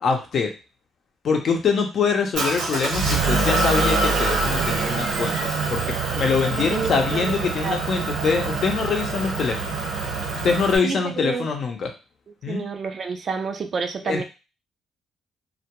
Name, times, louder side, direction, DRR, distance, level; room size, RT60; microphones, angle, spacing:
voice 1, 0.0-0.5 1.2-5.3 5.7-9.7 10.4-11.9 12.4-12.6 14.1-14.2, left 5 dB, 55° left, 3 dB, 0.6 m, -24 dB
Motor vehicle (road) / Engine, 2.3-10.8, right 3 dB, 85° right, 0.9 m, -25 dB
voice 2, 6.7-7.4 7.6-7.8 10.8-11.5 12.5-14.2, right 5 dB, 50° right, 6 dB, 0.4 m, -29 dB
2.2 x 2.2 x 2.9 m, 0.30 s
cardioid pair, 90°, 0 cm